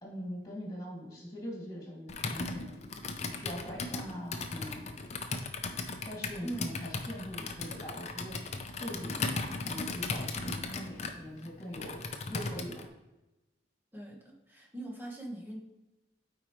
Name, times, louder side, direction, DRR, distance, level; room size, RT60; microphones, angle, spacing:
voice 1, 0.0-2.7 3.3-4.9 6.1-8.4 8.8-12.9, equal, 20° left, -3 dB, 2.3 m, -42 dB
Computer keyboard, 2.1-12.9, left 3 dB, 40° left, 0.6 m, -37 dB
voice 2, 13.9-15.6, right 1 dB, 10° right, -2 dB, 1.2 m, -41 dB
8.8 x 4.6 x 3.1 m, 0.99 s
head